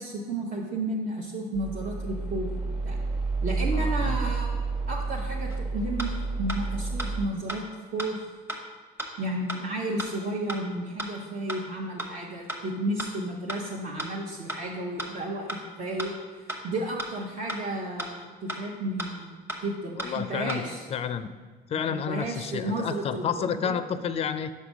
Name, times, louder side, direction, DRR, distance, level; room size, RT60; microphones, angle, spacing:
voice 1, 0.0-3.0 3.4-4.5 4.9-7.6 7.9-8.2 9.2-16.1 16.6-20.8 21.7-23.7, right 1 dB, 50° right, -3 dB, 0.9 m, -33 dB
sound 1, 1.5-7.3, right 3 dB, 35° right, 1.4 m, -30 dB
voice 2, 3.7-4.2 20.0-20.6 20.9-21.3 21.7-24.5, left 7 dB, 35° left, 12 dB, 0.4 m, -30 dB
sound 2, 5.5-5.6 6.0-6.1 6.5-6.6 7.0-7.1 7.5-7.6 8.0-8.1 8.5-8.6 9.0-9.1 9.5-9.6 10.0-10.1 10.5-10.6 11.0-11.1 11.5-11.6 12.0-12.1 12.5-12.6 13.0-13.1 13.5-13.6 14.0-14.1 14.5-14.6 15.0-15.1 15.5-15.6 16.0-16.1 16.5-16.6 17.0-17.1 17.5-17.6 18.0-18.1 18.5-18.6 19.0-19.1 19.5-19.6 20.0-20.1 20.5-20.6, right 1 dB, 15° right, 1.0 m, -34 dB
5.4 x 5.0 x 6.1 m, 1.4 s
cardioid pair, 110°, 17 cm